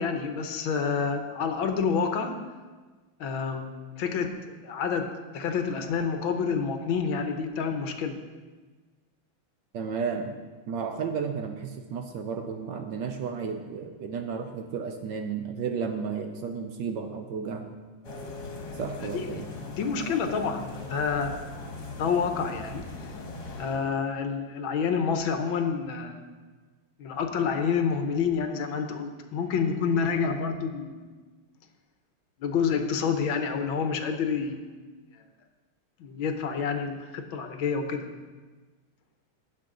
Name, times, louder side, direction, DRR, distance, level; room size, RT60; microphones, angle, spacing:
voice 1, 0.0-2.4 3.2-8.2 19.0-21.4 21.9-23.1 23.6-26.3 27.0-31.0 32.4-34.6 35.1-35.2 36.0-38.1, left 6 dB, 70° left, 6 dB, 1.6 m, -28 dB
voice 2, 9.7-10.4 10.7-17.8 18.8-19.5, right 6 dB, 65° right, 5 dB, 1.2 m, -33 dB
sound 1, 18.0-24.0, left 2 dB, 55° left, 1.8 m, -40 dB
15.5 x 6.8 x 3.8 m, 1.4 s
omnidirectional pair, 2.3 m